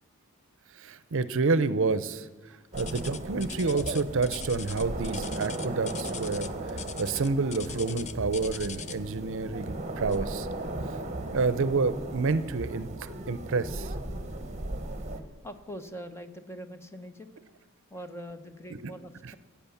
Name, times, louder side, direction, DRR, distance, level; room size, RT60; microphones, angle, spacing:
voice 1, 0.8-2.3 2.7-6.5 7.0-10.5 11.3-13.9 18.7-18.8, right 4 dB, 60° right, 15 dB, 0.7 m, -28 dB
sound 1, 2.7-15.2, right 1 dB, 30° right, 1.1 m, -36 dB
sound 2, 2.8-9.2 10.1-10.4 10.9-11.0 11.7-11.8, left 8 dB, 35° left, 0.6 m, -42 dB
voice 2, 15.4-17.3 17.9-19.4, equal, 10° left, 8 dB, 0.9 m, -43 dB
16.0 x 8.7 x 7.1 m, 1.3 s
head